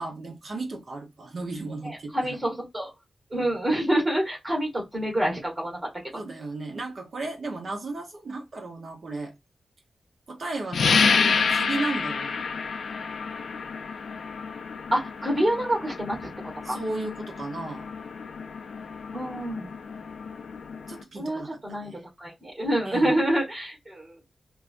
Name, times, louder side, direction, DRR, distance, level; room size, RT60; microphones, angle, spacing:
voice 1, 0.0-2.4 6.1-9.3 10.3-12.5 16.1-16.3 16.6-17.9 20.9-22.0 22.8-23.2, right 2 dB, 50° right, 0.9 m, -35 dB
voice 2, 1.8-2.9 3.3-5.8 14.9-16.3 16.6-16.8 19.1-19.7 21.1-24.1, right 1 dB, 20° right, 1.4 m, -27 dB
sound 1, 10.7-21.0, left 5 dB, 70° left, 0.4 m, -29 dB
3.3 x 2.3 x 2.5 m
wide cardioid pair, 145°, 0 cm